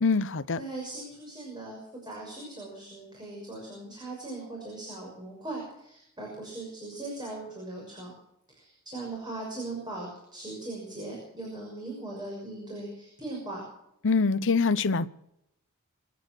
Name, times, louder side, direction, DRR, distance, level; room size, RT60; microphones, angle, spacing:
voice 1, 0.0-0.6 14.0-15.1, left 4 dB, 60° left, 0.9 m, -24 dB
voice 2, 0.6-8.1 8.5-13.7, right 2 dB, 20° right, 6.2 m, -39 dB
25.0 x 9.3 x 6.2 m
head